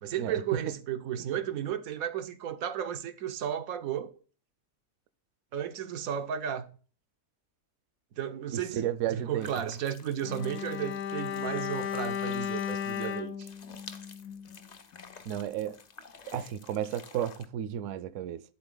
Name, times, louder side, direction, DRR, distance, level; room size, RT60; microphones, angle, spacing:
voice 1, 0.0-4.1 5.5-6.8 8.2-8.9 9.1-13.5, right 9 dB, 90° right, 1.2 m, -34 dB
voice 2, 8.5-9.5 15.3-15.8 16.3-18.4, right 10 dB, 70° right, 0.9 m, -33 dB
sound 1, 9.4-17.4, left 5 dB, 45° left, 0.6 m, -51 dB
Bowed string instrument, 10.2-14.7 14.9-15.1, left 8 dB, 80° left, 1.1 m, -35 dB
11.5 x 4.0 x 3.9 m
omnidirectional pair, 1.4 m